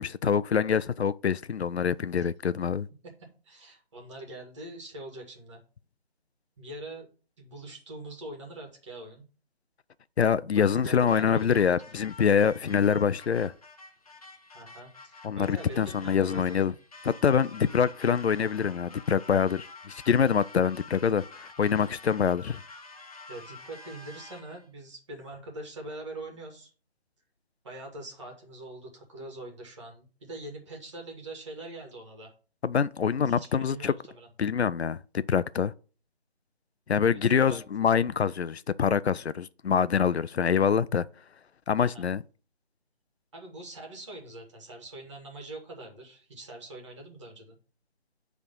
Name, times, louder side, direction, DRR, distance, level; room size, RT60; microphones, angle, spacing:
voice 1, 0.0-2.9 10.2-13.5 15.2-16.7 17.0-21.2 21.6-22.6 32.6-33.9 34.4-35.7 36.9-41.1 41.7-42.2, left 7 dB, 85° left, 0.5 m, -25 dB
voice 2, 3.4-5.6 6.6-7.1 7.4-9.2 10.5-11.8 14.5-16.8 23.3-26.7 27.6-32.3 33.2-34.3 37.0-37.9 41.8-42.1 43.3-47.6, right 1 dB, 30° right, 2.0 m, -43 dB
Mexican Hat Dance, 11.0-24.7, left 3 dB, 35° left, 0.8 m, -49 dB
9.6 x 3.6 x 5.4 m
figure-of-eight pair, 165°, 32 cm